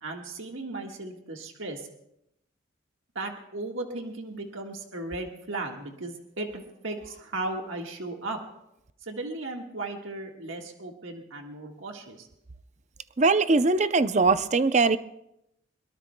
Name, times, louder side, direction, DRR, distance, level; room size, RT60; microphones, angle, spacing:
voice 1, 0.0-1.9 3.2-8.4 9.0-12.3, right 2 dB, 85° right, 2 dB, 1.6 m, -36 dB
voice 2, 13.2-15.0, right 3 dB, 35° right, 12 dB, 0.5 m, -21 dB
22.5 x 22.0 x 2.3 m, 0.80 s
head